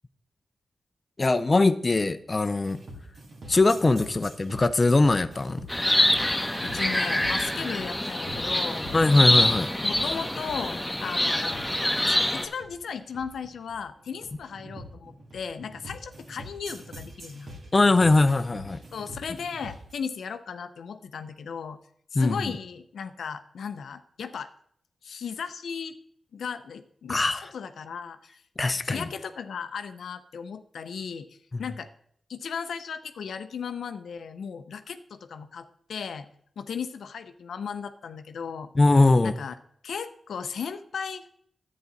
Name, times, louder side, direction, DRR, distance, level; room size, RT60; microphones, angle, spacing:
voice 1, 1.2-2.8 3.5-5.7 8.9-9.7 17.7-18.8 22.1-22.5 27.1-27.4 28.6-29.1 31.5-31.6 38.8-39.4, left 2 dB, 35° left, 11 dB, 0.5 m, -21 dB
sound 1, 2.6-19.9, equal, 70° right, 2.5 m, -45 dB
sound 2, 5.7-12.5, left 1 dB, 10° left, 1.3 m, -25 dB
voice 2, 6.6-8.8 9.8-17.5 18.9-21.8 22.1-24.5 25.0-25.9 26.3-27.2 27.5-28.2 28.8-31.9 32.3-36.3 36.6-38.7 39.2-39.5 39.8-41.3, left 6 dB, 85° left, 9 dB, 0.6 m, -36 dB
10.5 x 8.4 x 4.0 m, 0.65 s
cardioid pair, 70°, 0 cm